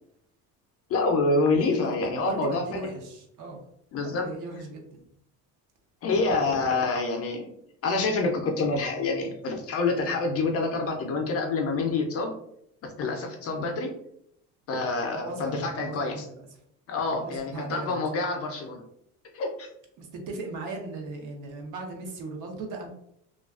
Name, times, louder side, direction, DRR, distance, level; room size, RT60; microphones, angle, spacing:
voice 1, 0.9-2.8 3.9-4.2 6.0-7.5 7.8-12.3 13.0-13.9 14.7-16.2 16.9-18.8 19.3-19.7, left 3 dB, 40° left, 3 dB, 0.5 m, -27 dB
voice 2, 1.6-2.0 2.2-3.6 4.0-5.0 15.1-16.6 17.1-18.0 20.0-22.9, right 3 dB, 55° right, 2 dB, 0.7 m, -37 dB
2.3 x 2.2 x 2.3 m, 0.72 s
cardioid pair, 125°, 36 cm